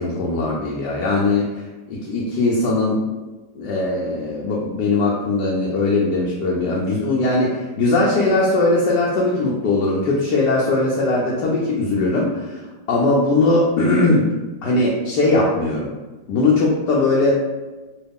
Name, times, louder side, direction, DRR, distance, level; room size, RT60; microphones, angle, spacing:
voice 1, 0.0-1.5 1.9-3.0 3.6-12.6 12.9-14.3 14.6-15.9 16.3-17.4, left 2 dB, 75° left, -4 dB, 1.1 m, -19 dB
3.1 x 2.3 x 3.4 m, 1.2 s
omnidirectional pair, 1.9 m